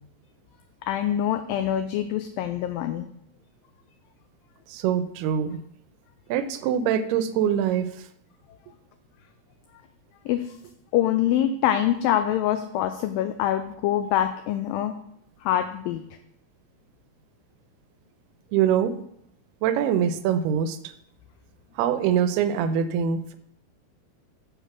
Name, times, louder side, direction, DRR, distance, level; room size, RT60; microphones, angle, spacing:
voice 1, 0.9-3.1 10.3-10.5 10.9-15.0 15.4-16.0, left 11 dB, 80° left, 8 dB, 2.1 m, -25 dB
voice 2, 4.7-5.6 6.3-7.9 18.5-18.9 19.6-20.8 21.8-23.4, right 8 dB, 90° right, 11 dB, 2.7 m, -23 dB
7.0 x 6.6 x 5.9 m, 0.74 s
omnidirectional pair, 4.5 m